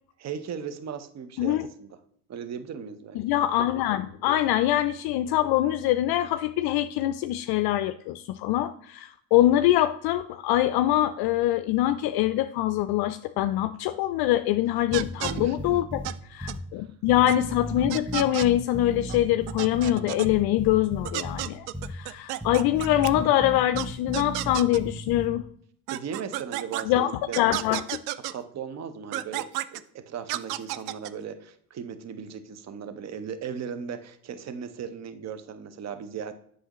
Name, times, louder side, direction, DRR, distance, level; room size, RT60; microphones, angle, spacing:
voice 1, 0.2-2.0 2.3-3.2 15.3-15.8 16.8-16.9 25.9-27.8 28.3-36.3, right 7 dB, 35° right, 10 dB, 0.8 m, -37 dB
voice 2, 3.2-16.0 16.3-25.4 26.8-27.1 27.4-27.8, left 13 dB, 55° left, 11 dB, 0.5 m, -24 dB
sound 1, 14.9-16.1 16.4-16.6 17.1-19.9 20.2-21.4 21.7-21.9 22.4-25.3, equal, 5° left, 0.5 m, -35 dB
sound 2, 14.9-15.3 16.0-16.1 16.5-16.6 17.3-17.4 17.9-18.5 19.1-19.2 19.5-20.3 21.0-23.1 23.8-23.9 24.1-24.8 25.9-26.8 27.3-28.3 29.1-29.8 30.3-31.1, right 15 dB, 80° right, 0.5 m, -32 dB
7.9 x 6.4 x 3.0 m, 0.64 s
hypercardioid pair, 75°, 46 cm